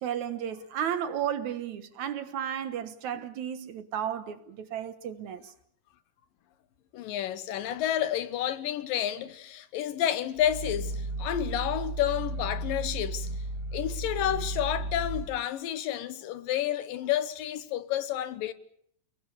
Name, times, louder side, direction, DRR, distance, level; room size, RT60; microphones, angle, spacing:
voice 1, 0.0-5.4, right 9 dB, 65° right, 2.4 m, -33 dB
voice 2, 6.9-10.9 11.2-13.3 13.7-18.5, left 11 dB, 90° left, 2.9 m, -30 dB
Growling, 10.4-15.3, right 1 dB, 35° right, 2.2 m, -34 dB
29.5 x 20.5 x 6.9 m
omnidirectional pair, 3.9 m